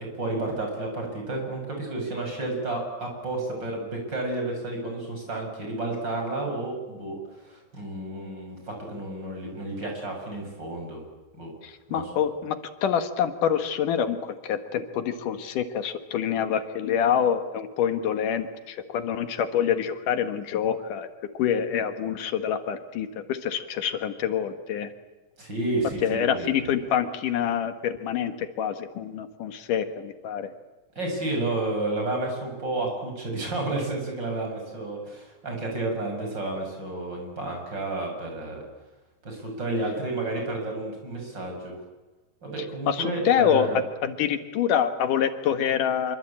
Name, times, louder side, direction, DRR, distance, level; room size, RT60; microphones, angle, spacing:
voice 1, 0.1-11.0 11.4-11.5 11.9-12.1 25.4-26.7 31.0-38.6 39.2-41.8 42.4-43.8, right 2 dB, 30° right, 1 dB, 7.3 m, -31 dB
voice 2, 11.6-21.1 21.3-24.9 26.0-30.5 42.9-43.7 44.0-46.2, left 8 dB, 80° left, 9 dB, 3.0 m, -26 dB
26.5 x 24.0 x 8.7 m, 1.1 s
omnidirectional pair, 3.6 m